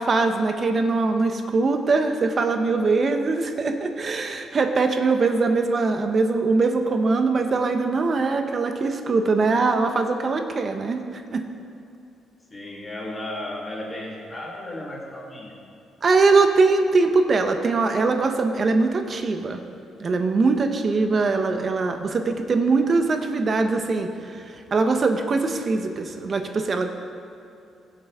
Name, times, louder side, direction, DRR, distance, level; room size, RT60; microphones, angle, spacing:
voice 1, 0.0-11.0 11.3-11.5 16.0-19.6 20.0-26.9, right 3 dB, 45° right, 6 dB, 0.9 m, -22 dB
voice 2, 12.5-15.5, left 1 dB, 20° left, -4 dB, 3.0 m, -34 dB
16.0 x 7.9 x 3.7 m, 2.6 s
cardioid pair, 90°, 0 cm